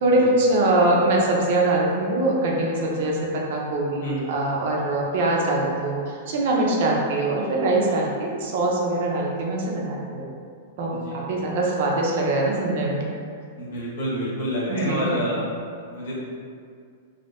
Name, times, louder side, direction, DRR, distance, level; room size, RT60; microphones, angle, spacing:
voice 1, 0.0-10.3 10.8-13.0 14.7-15.2, right 2 dB, 45° right, -2 dB, 0.5 m, -23 dB
voice 2, 13.6-16.2, equal, 55° left, -6 dB, 1.0 m, -28 dB
2.9 x 2.6 x 3.1 m, 2.2 s
supercardioid pair, 175°, 0 cm